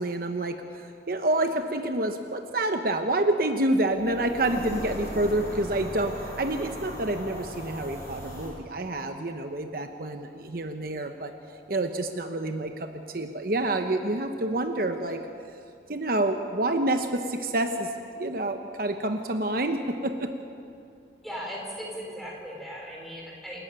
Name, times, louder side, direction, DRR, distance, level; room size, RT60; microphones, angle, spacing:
voice 1, 0.0-11.3 11.7-15.2 15.9-20.3, right 1 dB, 55° right, 6 dB, 1.0 m, -28 dB
sound 1, 3.9-8.5, equal, 15° left, 6.4 m, -38 dB
voice 2, 21.2-23.6, equal, ahead, -3 dB, 4.5 m, -38 dB
28.5 x 12.5 x 8.9 m, 2.5 s
head